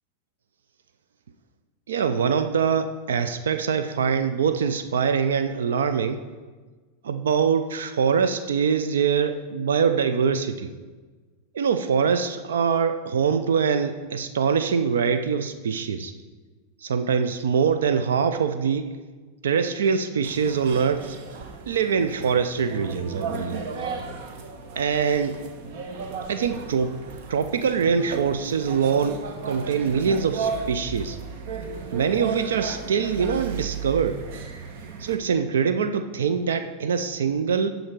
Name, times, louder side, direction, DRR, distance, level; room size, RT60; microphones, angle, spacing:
voice 1, 1.9-6.2 7.0-10.7 11.5-16.1 16.8-18.9 19.4-21.2 21.7-23.6 24.8-25.3 26.3-26.9 27.3-31.2 31.9-34.2 35.0-37.7, right 6 dB, 80° right, 9 dB, 0.5 m, -23 dB
sound 1, 20.2-35.2, right 5 dB, 60° right, 1.0 m, -35 dB
11.5 x 4.0 x 6.0 m, 1.4 s
hypercardioid pair, 100°, 0 cm